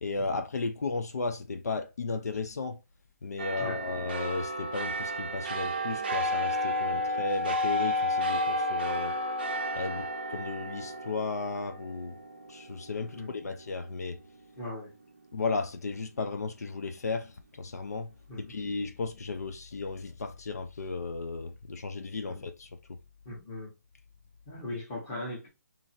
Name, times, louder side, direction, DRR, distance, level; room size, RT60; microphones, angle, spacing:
voice 1, 0.0-2.8 3.2-9.1 9.8-12.2 12.5-14.2 15.3-18.1 18.4-22.7, left 4 dB, 75° left, 0.6 m, -34 dB
sound 1, 3.4-14.2 14.6-14.7, left 1 dB, 35° right, 0.5 m, -32 dB
voice 2, 13.0-13.3 14.6-14.9 18.3-18.6 22.2-22.5 23.2-23.7 24.5-25.5, left 1 dB, 10° left, 1.0 m, -39 dB
2.9 x 2.7 x 4.3 m
hypercardioid pair, 175°, 9 cm